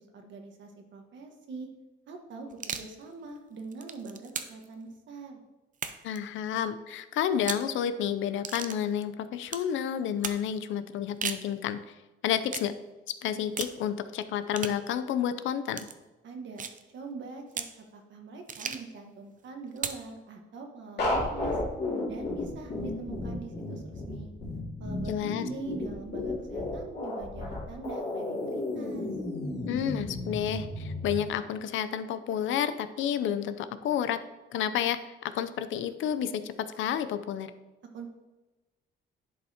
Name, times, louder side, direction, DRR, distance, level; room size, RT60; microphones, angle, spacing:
voice 1, 0.1-1.7 2.1-5.4 16.2-16.6 16.9-17.6 17.9-21.6 22.1-24.3 24.8-29.1 37.9-38.1, right 4 dB, 65° right, 3 dB, 1.5 m, -43 dB
sound 1, 2.5-2.9 3.6-4.7 5.7-6.2 7.3-7.7 8.4-8.8 9.5-9.7 10.2-10.4 11.0-11.5 12.5-12.7 13.6-13.8 14.5-14.8 15.7-15.9 16.6-16.8 17.5-17.8 18.5-18.9 19.8-20.1, right 6 dB, 40° right, 0.6 m, -36 dB
voice 2, 6.0-11.8 12.2-12.7 13.1-15.9 25.1-25.5 29.7-34.2 34.5-37.5, left 9 dB, 80° left, 12 dB, 0.6 m, -30 dB
sound 2, 21.0-31.2, left 2 dB, 55° left, 2.6 m, -33 dB
10.5 x 5.5 x 2.9 m, 1.1 s
cardioid pair, 90°, 20 cm